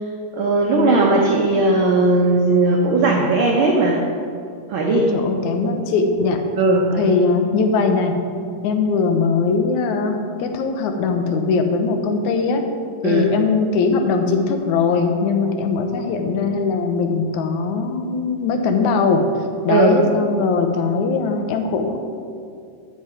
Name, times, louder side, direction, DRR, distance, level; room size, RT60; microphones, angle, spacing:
voice 1, 0.3-4.0 4.7-5.1 5.6-5.8 6.6-7.2 13.0-13.3 19.7-19.9, right 2 dB, 85° right, -1 dB, 1.1 m, -17 dB
voice 2, 4.9-6.4 7.0-8.1 8.6-12.6 13.0-19.2 19.7-22.0, left 4 dB, 75° left, 5 dB, 2.1 m, -20 dB
9.1 x 7.4 x 4.8 m, 2.3 s
omnidirectional pair, 3.5 m